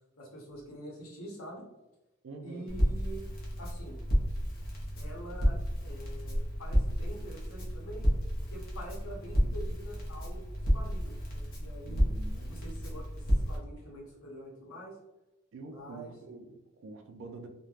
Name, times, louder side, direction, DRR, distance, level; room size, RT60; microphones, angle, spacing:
voice 1, 0.2-1.6 2.4-3.3 3.6-4.0 5.0-8.1 8.5-10.4 10.7-12.0 12.5-15.0 15.7-16.1, right 1 dB, 80° left, -2 dB, 0.9 m, -46 dB
voice 2, 2.2-2.8 11.9-12.6 15.5-17.5, right 3 dB, 60° right, 5 dB, 0.4 m, -46 dB
Crackle, 2.7-13.6, equal, 40° left, 0.7 m, -31 dB
3.2 x 2.1 x 2.3 m, 1.0 s
head